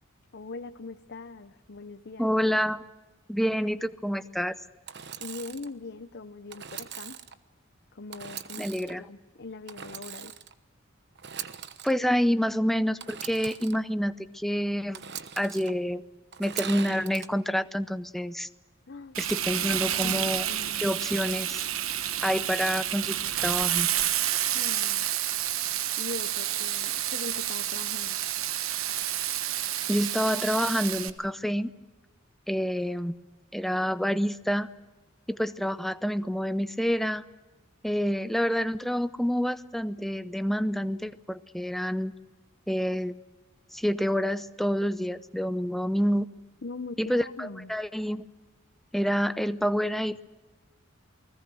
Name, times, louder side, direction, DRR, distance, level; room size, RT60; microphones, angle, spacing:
voice 1, 0.3-2.3 5.2-7.2 7.9-10.4 18.9-19.3 20.0-21.0 24.5-25.1 26.0-28.2 46.6-47.8, left 3 dB, 55° left, 9 dB, 0.8 m, -41 dB
voice 2, 2.2-2.8 3.3-4.6 8.6-9.0 11.8-15.0 15.4-16.0 16.4-18.5 19.2-20.4 20.8-21.6 22.2-23.9 29.9-31.7 32.5-33.1 33.5-34.7 35.3-37.2 37.8-42.1 42.7-43.2 43.7-46.3 47.0-48.3 48.9-50.2, equal, ahead, 13 dB, 0.7 m, -28 dB
Engine / Sawing, 4.9-5.7 6.5-7.3 8.1-8.9 9.7-10.5 11.1-11.9 13.0-13.8 14.9-15.7 16.3-17.3, right 9 dB, 55° right, 1.1 m, -40 dB
Frying (food), 19.1-31.1, right 12 dB, 90° right, 1.1 m, -29 dB
29.0 x 20.5 x 6.3 m, 1.2 s
head